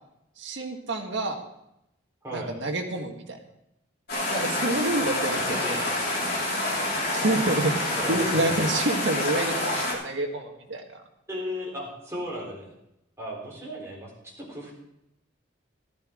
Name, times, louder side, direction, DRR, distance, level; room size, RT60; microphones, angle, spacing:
voice 1, 0.4-1.4 2.3-3.4 4.3-5.8 6.9-10.9, right 2 dB, 70° right, 2 dB, 1.7 m, -28 dB
sound 1, 4.1-9.9, left 1 dB, 50° left, 3.5 m, -27 dB
voice 2, 5.5-5.8 7.9-8.6 11.3-12.7 13.2-14.7, equal, 15° right, -4 dB, 4.1 m, -36 dB
14.0 x 12.5 x 3.8 m, 0.84 s
head